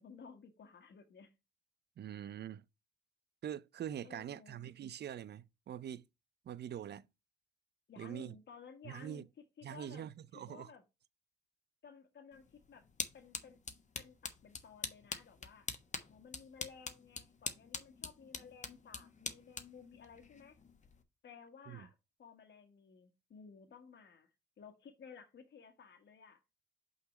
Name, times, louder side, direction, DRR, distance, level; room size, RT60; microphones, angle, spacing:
voice 1, 0.0-1.3 4.0-4.7 7.9-9.3 9.6-10.1 10.3-10.8 11.8-12.8 13.1-13.6 14.0-15.7 16.0-20.6 21.2-24.3 24.6-26.4, left 6 dB, 60° left, 1.5 m, -56 dB
voice 2, 2.0-2.6 3.4-6.0 6.5-7.0 8.0-8.4 8.8-9.2 9.6-10.7 21.7-21.9, right 10 dB, 60° right, 0.5 m, -44 dB
sound 1, 12.3-21.0, left 4 dB, 40° left, 1.3 m, -45 dB
5.7 x 4.1 x 5.5 m
supercardioid pair, 55°, 20 cm